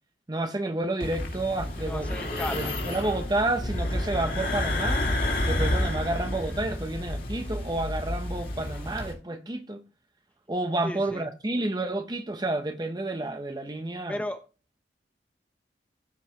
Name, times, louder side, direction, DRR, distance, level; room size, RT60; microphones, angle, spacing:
voice 1, 0.3-5.0 5.5-9.8 10.5-14.2, right 2 dB, 25° right, 0.8 m, -30 dB
sound 1, 1.0-9.1, left 1 dB, 50° left, 2.6 m, -30 dB
voice 2, 1.8-2.8 10.8-11.3 14.1-14.4, left 1 dB, 5° left, 0.9 m, -35 dB
15.0 x 5.3 x 2.9 m
head